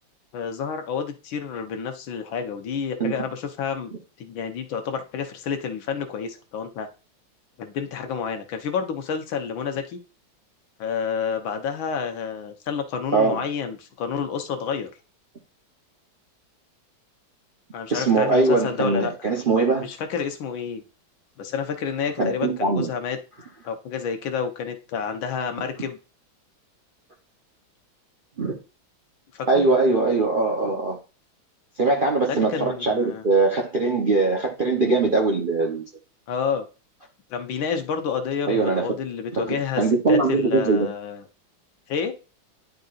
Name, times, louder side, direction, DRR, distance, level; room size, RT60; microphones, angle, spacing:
voice 1, 0.3-3.9 4.2-6.9 7.6-10.0 10.8-14.9 17.7-19.1 19.8-20.8 21.4-23.2 23.6-26.0 29.3-29.6 32.3-33.2 36.3-36.7 37.3-39.8 40.1-41.2 41.9-42.1, left 6 dB, 80° left, 1.7 m, -29 dB
voice 2, 17.9-19.9 22.2-22.9 28.4-28.6 29.5-31.0 31.8-35.9 38.5-38.9 39.3-40.9, right 3 dB, 50° right, 0.6 m, -21 dB
10.5 x 3.9 x 2.4 m
omnidirectional pair, 2.1 m